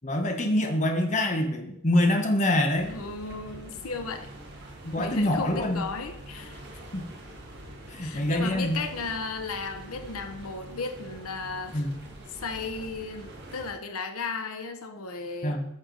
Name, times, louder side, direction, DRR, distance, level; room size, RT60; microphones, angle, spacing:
voice 1, 0.0-2.9 4.8-5.8 6.9-7.1 7.9-8.8 11.7-11.9 15.4-15.7, left 1 dB, 35° left, 3 dB, 1.0 m, -25 dB
sound 1, 2.7-13.7, right 1 dB, 50° right, 1.6 m, -45 dB
voice 2, 2.9-4.3 4.9-6.6 8.0-11.8 12.3-15.6, left 4 dB, 90° left, 6 dB, 1.0 m, -35 dB
9.3 x 6.4 x 4.0 m, 0.79 s
head